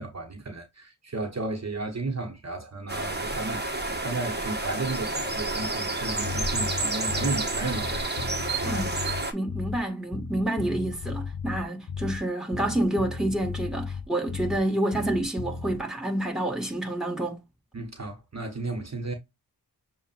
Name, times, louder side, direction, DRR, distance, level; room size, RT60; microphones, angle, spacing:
voice 1, 0.0-3.6 4.0-8.1 8.5-8.8 17.7-19.1, right 2 dB, 45° right, 1.3 m, -33 dB
sound 1, 2.9-9.3, right 2 dB, 25° right, 1.4 m, -30 dB
Bass guitar, 6.2-7.5 7.7-9.9 10.1-12.3 12.5-14.7 14.9-15.8, left 5 dB, 60° left, 0.9 m, -35 dB
voice 2, 8.6-9.0 9.3-17.4, right 1 dB, ahead, 1.9 m, -28 dB
7.1 x 2.5 x 2.5 m
wide cardioid pair, 65°, 38 cm